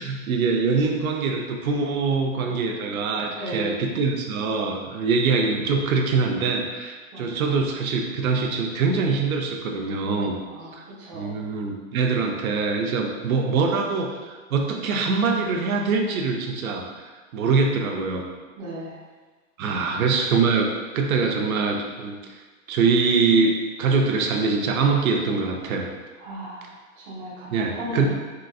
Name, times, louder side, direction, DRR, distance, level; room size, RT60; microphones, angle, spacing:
voice 1, 0.0-10.3 10.7-10.9 11.1-18.2 19.6-22.4 22.7-23.5 23.8-25.9 27.5-28.1, right 4 dB, 90° right, 2 dB, 0.6 m, -23 dB
voice 2, 3.4-3.8 7.1-7.3 10.4-10.7 11.0-11.4 18.6-19.0 19.7-19.9 26.2-28.1, right 1 dB, 25° right, -6 dB, 0.6 m, -35 dB
3.9 x 2.5 x 2.3 m, 1.3 s
hypercardioid pair, 160°, 41 cm